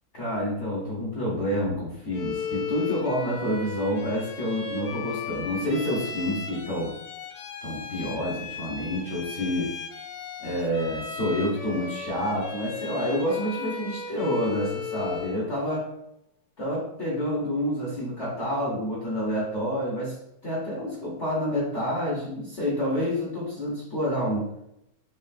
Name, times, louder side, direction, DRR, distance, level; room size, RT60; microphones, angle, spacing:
voice 1, 0.1-7.0 7.6-9.8 10.4-15.9 16.6-24.5, equal, 45° left, -5 dB, 1.2 m, -28 dB
Bowed string instrument, 2.1-15.5, left 4 dB, 90° left, 1.5 m, -36 dB
5.3 x 3.1 x 2.5 m, 0.80 s
omnidirectional pair, 2.2 m